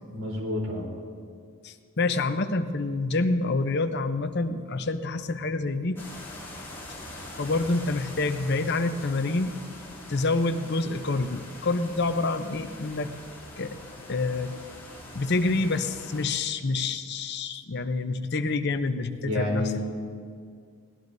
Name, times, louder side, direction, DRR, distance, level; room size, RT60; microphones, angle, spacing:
voice 1, 0.1-0.9 19.2-20.0, left 1 dB, 70° right, -2 dB, 3.7 m, -29 dB
voice 2, 1.6-6.0 7.4-9.5 10.1-13.1 13.6-13.8 14.1-14.6 15.1-19.6, left 3 dB, 50° left, 8 dB, 0.7 m, -27 dB
sound 1, 6.0-16.3, left 1 dB, 10° left, 3.1 m, -43 dB
21.5 x 18.0 x 2.7 m, 2.1 s
head